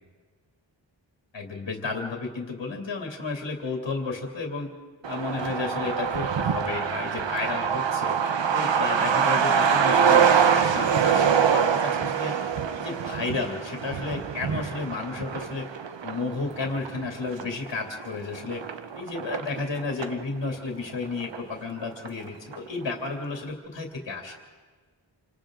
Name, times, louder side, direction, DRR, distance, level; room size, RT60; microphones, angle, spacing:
voice 1, 1.3-4.7 5.1-8.1 8.5-12.3 12.7-15.7 16.0-18.6 18.9-24.3, left 3 dB, 65° left, 1 dB, 2.8 m, -32 dB
Truck, 5.0-20.2 20.5-20.6 20.9-21.8 22.1-22.2 22.5-22.9, right 7 dB, 75° right, 1.1 m, -25 dB
28.5 x 26.0 x 3.9 m, 1.5 s
wide cardioid pair, 100°, 45 cm